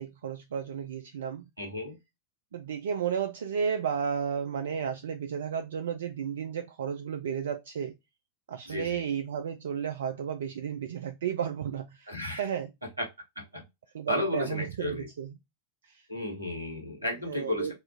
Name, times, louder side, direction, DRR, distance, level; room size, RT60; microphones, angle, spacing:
voice 1, 0.0-1.5 2.5-7.9 8.5-12.7 13.9-15.3 15.8-16.1 17.2-17.7, right 7 dB, 65° right, 0.3 m, -33 dB
voice 2, 1.6-2.0 8.7-9.0 12.1-12.5 13.0-13.1 13.4-13.6 14.1-15.1 16.1-17.7, left 1 dB, 85° right, 1.1 m, -33 dB
4.2 x 2.4 x 2.3 m
figure-of-eight pair, 90°, 0 cm